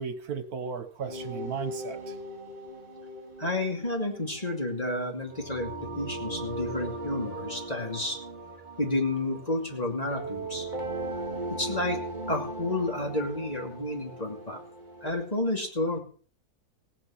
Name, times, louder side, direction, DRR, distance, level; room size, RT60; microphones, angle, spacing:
voice 1, 0.0-2.1, right 6 dB, 80° right, 10 dB, 1.8 m, -35 dB
sound 1, 1.0-15.1, right 2 dB, 30° right, 2.5 m, -38 dB
voice 2, 3.4-8.2 8.8-10.7 11.6-14.6 15.0-16.0, left 2 dB, 25° left, 1 dB, 2.7 m, -31 dB
17.0 x 9.2 x 5.7 m, 0.43 s
omnidirectional pair, 1.6 m